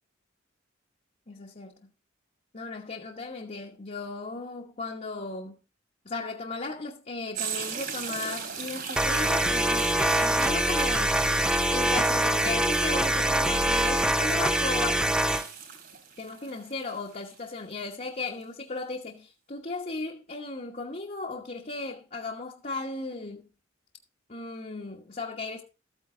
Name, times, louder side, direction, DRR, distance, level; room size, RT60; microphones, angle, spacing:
voice 1, 1.3-1.7 2.5-5.6 6.0-9.9 10.2-11.2 11.7-15.1 16.2-23.5 24.3-25.6, left 3 dB, 35° left, 1.2 m, -36 dB
sound 1, 7.3-17.9 18.4-18.5, right 6 dB, 55° right, 3.4 m, -38 dB
sound 2, 9.0-15.5, right 1 dB, 5° right, 0.6 m, -24 dB
13.5 x 9.1 x 3.8 m
head